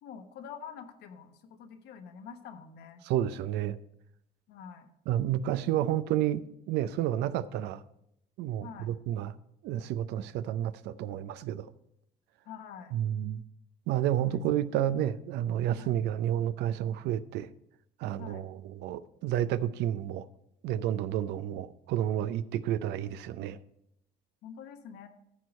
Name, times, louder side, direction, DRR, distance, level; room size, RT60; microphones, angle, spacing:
voice 1, 0.0-3.0 4.5-4.9 8.6-8.9 12.4-13.0 14.2-14.4 15.8-16.0 18.2-18.4 24.4-25.1, left 7 dB, 80° left, 1.1 m, -46 dB
voice 2, 3.1-3.8 5.1-7.8 8.4-9.3 9.6-11.7 12.9-13.4 13.9-17.5 18.0-20.2 20.6-23.6, right 11 dB, 85° right, 0.5 m, -30 dB
14.0 x 4.7 x 5.2 m
cardioid pair, 110°, 17 cm